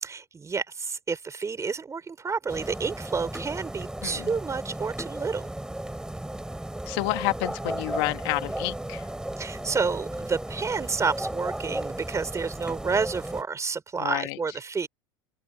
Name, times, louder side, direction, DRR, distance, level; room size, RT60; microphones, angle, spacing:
voice 1, 0.0-5.5 9.4-14.9, right 5 dB, 20° right, 4.2 m, -30 dB
sound 1, 2.5-13.4, right 1 dB, 5° right, 4.6 m, -35 dB
voice 2, 4.0-4.3 6.9-9.1 14.0-14.4, left 26 dB, 65° left, 1.8 m, -29 dB
open air
hypercardioid pair, 90°, 14 cm